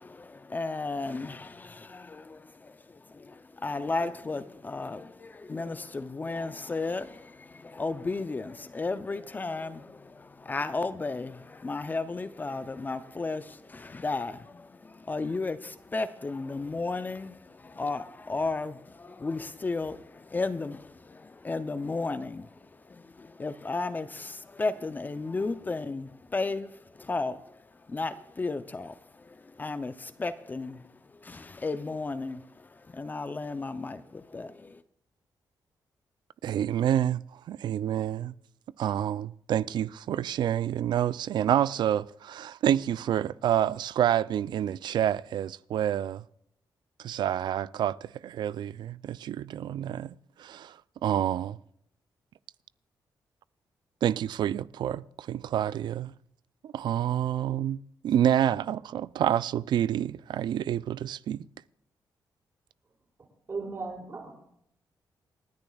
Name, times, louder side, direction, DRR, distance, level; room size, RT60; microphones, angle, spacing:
voice 1, 0.0-34.8, left 3 dB, 25° left, 0.5 m, -34 dB
voice 2, 36.4-38.3 38.8-46.2 47.0-51.6 54.0-56.1 56.6-61.5, right 10 dB, 75° right, 0.4 m, -28 dB
voice 3, 63.5-64.4, right 4 dB, 35° right, 5.4 m, -36 dB
28.0 x 10.5 x 2.3 m
wide cardioid pair, 135°, 8 cm